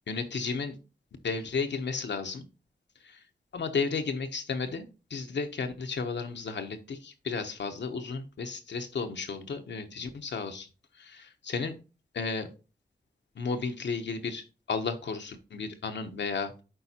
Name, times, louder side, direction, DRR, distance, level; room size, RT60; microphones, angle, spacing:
voice 1, 0.1-0.8 1.2-2.4 3.0-3.2 3.5-10.7 10.9-11.8 12.1-12.5 13.3-16.5, left 4 dB, 85° left, 6 dB, 0.8 m, -33 dB
10.0 x 4.0 x 2.8 m, 0.33 s
cardioid pair, 40°, 18 cm